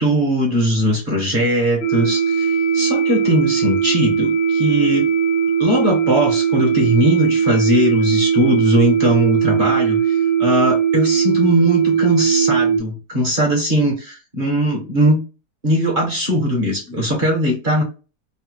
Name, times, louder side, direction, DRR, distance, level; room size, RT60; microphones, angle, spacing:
voice 1, 0.0-5.1 5.6-15.2 15.6-17.8, equal, 40° right, 1 dB, 0.8 m, -19 dB
sound 1, 1.8-12.8, right 7 dB, 90° left, 1.4 m, -18 dB
3.3 x 2.0 x 3.0 m, 0.32 s
omnidirectional pair, 1.9 m